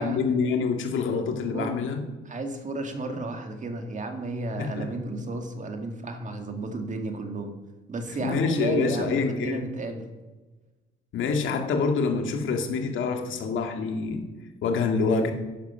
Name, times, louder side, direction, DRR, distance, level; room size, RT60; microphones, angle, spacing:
voice 1, 0.0-2.0 4.6-4.9 8.2-9.7 11.1-14.2 14.6-15.3, left 4 dB, 80° left, 3 dB, 2.1 m, -26 dB
voice 2, 2.3-7.5 7.9-10.1, right 2 dB, 40° right, 5 dB, 2.1 m, -32 dB
13.0 x 11.0 x 5.7 m, 1.2 s
cardioid pair, 90°, 20 cm